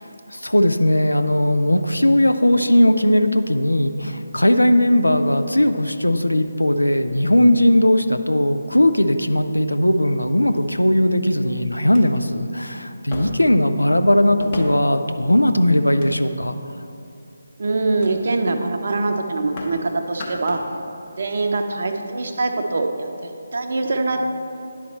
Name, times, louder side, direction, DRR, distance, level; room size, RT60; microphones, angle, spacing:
voice 1, 0.3-16.5, left 1 dB, 80° left, 8 dB, 0.4 m, -18 dB
sound 1, 6.4-7.4 8.3-8.4 9.0-9.6 10.5-10.6 11.3-11.4 11.8-12.0 13.1-13.6 14.4-15.0 15.7-16.5 17.1-17.4 18.0-18.2 18.5-18.7 18.9-19.8 20.1-20.7 21.0-21.2, left 2 dB, 25° left, 1.0 m, -36 dB
voice 2, 17.6-20.6 21.2-24.2, right 3 dB, 50° right, 4 dB, 0.6 m, -23 dB
10.0 x 4.2 x 4.2 m, 2.6 s
figure-of-eight pair, 150°, 0 cm